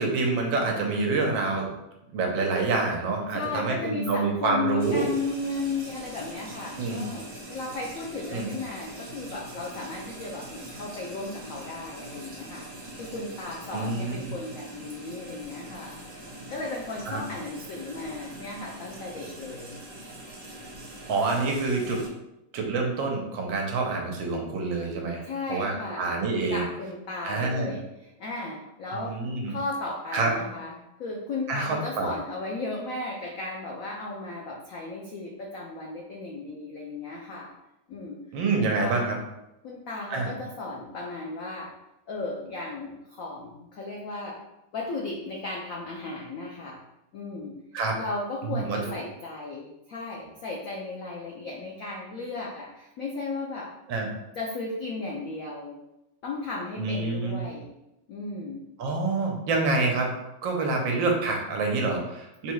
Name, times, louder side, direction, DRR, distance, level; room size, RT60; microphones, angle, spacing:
voice 1, 0.0-1.7 2.1-5.1 6.8-7.1 8.3-8.5 13.7-14.3 17.1-17.2 21.1-22.0 22.5-25.2 25.5-26.7 27.2-27.7 28.9-29.5 30.1-30.3 31.5-32.1 38.3-39.2 40.1-40.3 47.7-48.0 48.4-48.8 53.9-54.1 56.7-57.4 58.8-60.1 60.4-62.5, right 3 dB, 75° right, 1 dB, 1.4 m, -27 dB
voice 2, 3.3-12.7 13.0-15.9 16.5-19.8 25.2-26.1 26.5-29.2 29.5-37.5 37.9-38.2 38.6-39.1 39.6-41.7 42.1-44.4 44.7-46.8 47.1-47.6 48.0-53.7 54.4-55.8 56.2-57.7 58.1-58.6 60.8-60.9, left 3 dB, 85° left, -2 dB, 0.7 m, -35 dB
sound 1, 4.8-22.1, right 1 dB, 50° right, 1.4 m, -43 dB
3.8 x 2.3 x 4.5 m, 0.89 s
omnidirectional pair, 2.2 m